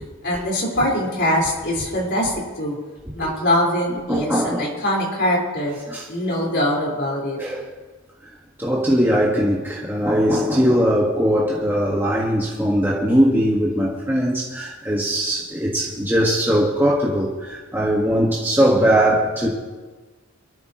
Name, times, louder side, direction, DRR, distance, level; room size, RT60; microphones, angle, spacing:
voice 1, 0.2-2.8 3.1-5.8 6.1-7.4, left 1 dB, 50° left, -3 dB, 5.1 m, -22 dB
voice 2, 4.1-4.7 5.9-6.0 7.4-7.7 8.6-19.5, equal, 10° right, -5 dB, 1.8 m, -20 dB
24.5 x 13.5 x 3.2 m, 1.3 s
head